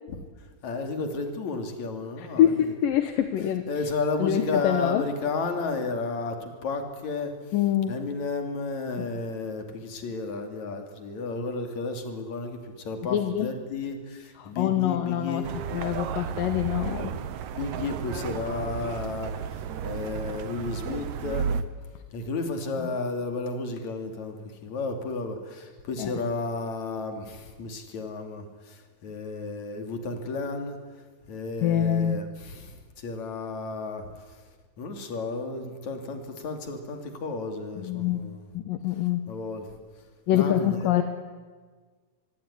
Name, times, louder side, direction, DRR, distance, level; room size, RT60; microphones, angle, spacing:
voice 1, 0.1-2.7 3.7-7.5 7.9-15.5 17.5-21.6 22.1-34.4 34.8-38.5 39.3-39.8 40.3-40.8, left 3 dB, 55° left, 5 dB, 4.0 m, -33 dB
voice 2, 2.4-3.6 4.2-5.0 7.5-8.0 13.1-13.5 14.4-15.4 15.7-17.1 26.0-26.1 31.6-32.2 37.8-38.3 38.5-39.3 40.3-41.0, left 11 dB, 75° left, 8 dB, 2.9 m, -25 dB
sound 1, 15.4-21.6, right 7 dB, 65° right, 2.2 m, -33 dB
25.0 x 23.5 x 9.9 m, 1.4 s
omnidirectional pair, 4.0 m